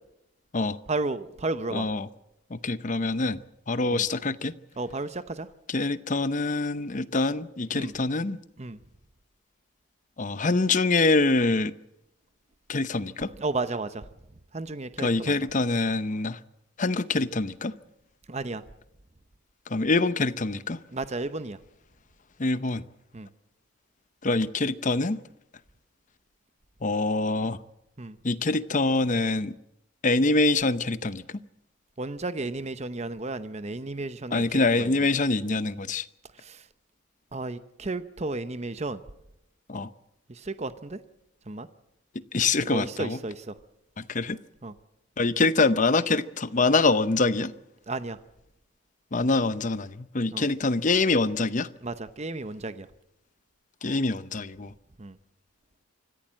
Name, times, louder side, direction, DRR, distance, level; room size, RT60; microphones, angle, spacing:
voice 1, 0.9-1.9 3.9-4.0 4.8-5.5 7.7-7.9 8.6-8.8 13.4-14.0 14.5-15.3 18.3-18.6 20.9-21.6 23.1-23.3 28.0-28.2 32.0-34.9 36.4-36.6 37.3-39.0 40.4-41.0 41.5-41.7 42.7-43.5 44.6-44.7 47.9-48.2 50.3-50.4 51.8-52.9 55.0-55.2, right 2 dB, 30° right, 0.8 m, -33 dB
voice 2, 1.7-2.1 2.5-3.4 3.7-4.5 5.7-8.4 10.2-11.7 12.7-13.3 15.0-16.4 16.8-17.7 19.7-20.8 22.4-22.8 24.2-25.2 26.8-27.6 28.2-29.5 30.0-31.2 34.3-36.0 39.7-39.9 42.3-43.2 44.0-44.4 45.2-47.5 49.1-51.7 53.8-54.7, left 3 dB, 35° left, 0.7 m, -25 dB
25.0 x 15.0 x 7.5 m
head